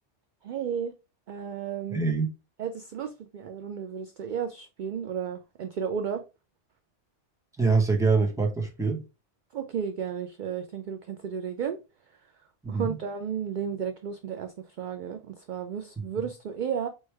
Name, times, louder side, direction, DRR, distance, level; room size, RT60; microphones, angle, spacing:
voice 1, 0.4-0.9 1.3-2.0 2.6-6.2 9.5-11.8 12.7-16.9, right 7 dB, 60° right, 0.5 m, -33 dB
voice 2, 1.9-2.3 7.6-9.0 12.6-12.9 16.0-16.1, right 4 dB, 5° right, 0.8 m, -24 dB
4.5 x 3.2 x 3.2 m
omnidirectional pair, 1.2 m